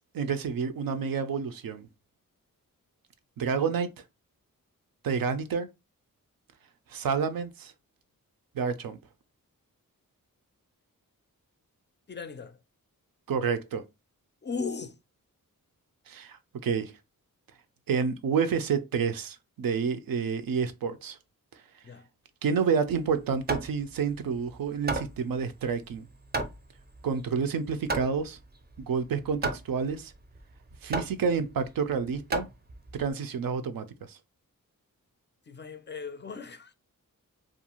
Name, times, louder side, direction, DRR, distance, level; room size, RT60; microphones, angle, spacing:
voice 1, 0.1-1.9 3.4-3.9 5.0-5.7 6.9-7.7 8.5-9.0 13.3-13.8 16.1-16.4 16.6-16.9 17.9-21.2 22.4-26.1 27.0-28.4 28.8-30.1 30.8-32.5 33.0-34.2, right 6 dB, 75° right, 0.5 m, -29 dB
voice 2, 12.1-12.6 14.4-14.9 21.8-22.0 35.5-36.7, left 5 dB, 30° left, 0.4 m, -37 dB
Hammer, 22.9-33.1, right 2 dB, 30° right, 0.5 m, -36 dB
2.5 x 2.3 x 2.9 m
cardioid pair, 60°, 35 cm